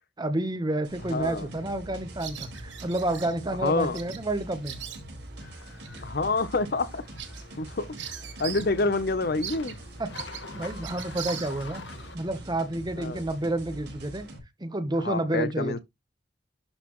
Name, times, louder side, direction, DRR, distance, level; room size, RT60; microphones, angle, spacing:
voice 1, 0.2-4.8 10.0-10.1 10.5-11.8 12.1-14.3 14.6-15.8, right 1 dB, 25° right, 1.0 m, -29 dB
sound 1, 0.8-14.4, right 1 dB, 65° right, 4.3 m, -44 dB
voice 2, 1.1-1.5 3.5-4.0 6.0-7.0 7.6-9.8 13.0-13.2 15.0-15.8, left 3 dB, 60° left, 0.8 m, -28 dB
Bird vocalization bird call bird song, 2.2-3.3 3.9-4.2 4.5-5.3 5.8-6.0 6.4-6.5 6.9-8.8 9.0-9.1 9.4-11.9, right 10 dB, 85° right, 1.4 m, -40 dB
sound 2, 5.4-12.2, left 4 dB, 85° left, 1.6 m, -46 dB
11.5 x 4.1 x 3.1 m
head